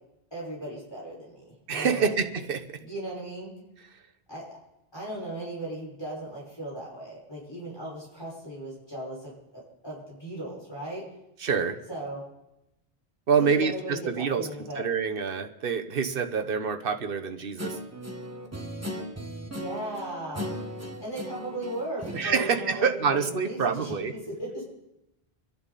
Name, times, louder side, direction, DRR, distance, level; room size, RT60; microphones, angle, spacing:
voice 1, 0.3-2.2 2.8-3.5 4.3-4.5 4.9-11.1 11.9-12.2 13.3-14.8 19.5-20.5 21.0-24.6, right 1 dB, 25° left, -6 dB, 5.8 m, -37 dB
voice 2, 1.7-2.8 11.4-11.8 13.3-14.5 14.8-17.8 22.1-24.1, right 6 dB, 60° right, 6 dB, 1.2 m, -26 dB
Guitar, 17.6-23.4, equal, 15° right, 1.4 m, -38 dB
27.5 x 10.5 x 4.2 m, 0.90 s
omnidirectional pair, 1.0 m